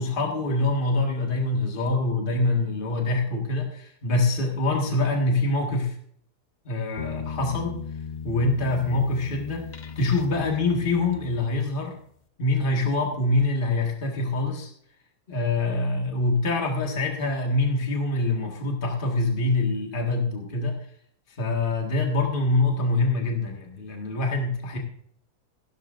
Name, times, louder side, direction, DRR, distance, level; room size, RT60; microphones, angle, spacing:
voice 1, 0.0-6.0 6.7-7.8 8.2-9.7 10.0-12.0 12.4-14.7 15.3-20.8 21.4-24.8, left 2 dB, 30° left, 1 dB, 1.9 m, -25 dB
sound 1, 7.0-11.9, left 6 dB, 55° left, 0.5 m, -37 dB
15.0 x 12.5 x 2.6 m, 0.65 s
omnidirectional pair, 1.8 m